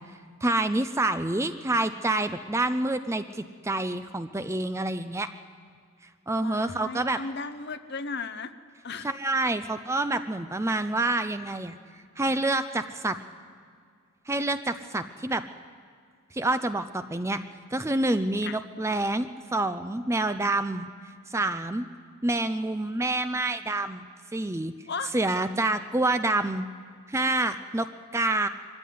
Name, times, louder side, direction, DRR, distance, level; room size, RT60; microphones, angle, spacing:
voice 1, 0.4-5.3 6.3-7.2 9.0-11.8 12.2-13.2 14.3-15.4 16.3-17.4 17.7-20.9 21.3-21.9 22.2-24.1 24.3-24.7 25.1-26.7 27.1-27.9 28.1-28.5, right 2 dB, 15° right, 10 dB, 0.5 m, -27 dB
voice 2, 6.4-8.5 8.8-9.1 18.4-18.6 24.9-25.1, left 4 dB, 50° left, 10 dB, 0.9 m, -35 dB
23.0 x 15.0 x 9.3 m, 2.2 s
head